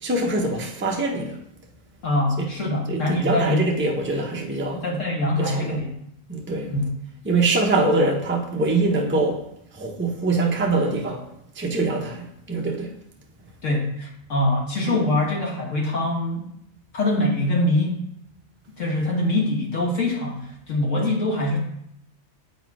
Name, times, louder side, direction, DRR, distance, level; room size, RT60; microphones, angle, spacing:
voice 1, 0.0-1.4 2.4-2.5 2.9-4.8 5.4-5.8 6.3-6.7 7.2-9.4 9.7-11.2 11.6-12.9 14.9-15.0, right 2 dB, 10° right, 0.6 m, -23 dB
voice 2, 2.0-3.7 4.7-5.9 6.7-6.9 13.6-16.4 16.9-18.0 18.8-21.6, left 1 dB, 65° left, 1.6 m, -23 dB
7.4 x 4.2 x 4.7 m
omnidirectional pair, 1.4 m